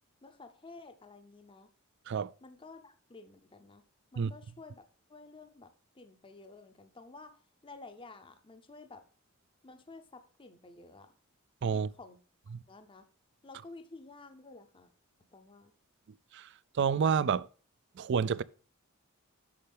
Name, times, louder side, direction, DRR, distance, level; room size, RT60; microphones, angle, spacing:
voice 1, 0.2-1.7 2.4-3.8 4.1-7.3 7.6-9.0 9.6-11.1 11.7-12.2 12.7-13.1 13.4-14.9 15.3-15.7, left 3 dB, 25° left, 0.7 m, -52 dB
voice 2, 16.7-17.5 18.0-18.4, right 6 dB, 55° right, 0.4 m, -28 dB
8.6 x 6.5 x 3.4 m
head